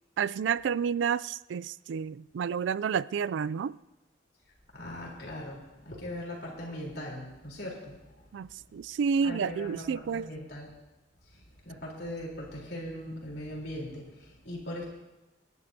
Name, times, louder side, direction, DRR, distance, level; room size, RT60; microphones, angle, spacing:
voice 1, 0.2-3.7 8.3-10.3, right 6 dB, 80° right, 19 dB, 0.3 m, -30 dB
voice 2, 4.7-8.3 9.2-10.7 11.3-14.8, left 1 dB, 60° left, -2 dB, 3.6 m, -40 dB
27.0 x 11.0 x 2.8 m, 1.0 s
head